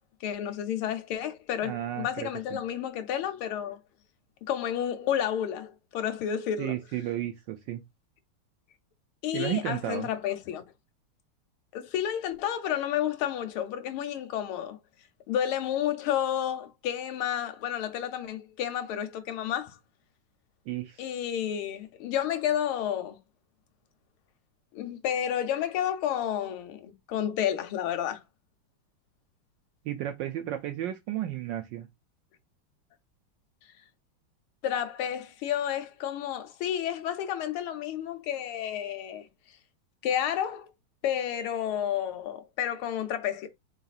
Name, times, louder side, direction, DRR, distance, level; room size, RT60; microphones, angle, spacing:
voice 1, 0.2-3.8 4.4-6.8 9.2-10.6 11.7-14.8 15.3-19.8 21.0-23.2 24.7-28.2 34.6-39.3 40.0-40.7 41.0-43.5, left 10 dB, 75° left, 1.5 m, -31 dB
voice 2, 1.6-2.6 6.6-7.8 9.3-10.1 20.7-21.0 29.8-31.9, right 12 dB, 75° right, 1.1 m, -33 dB
4.1 x 3.7 x 2.3 m
omnidirectional pair, 2.4 m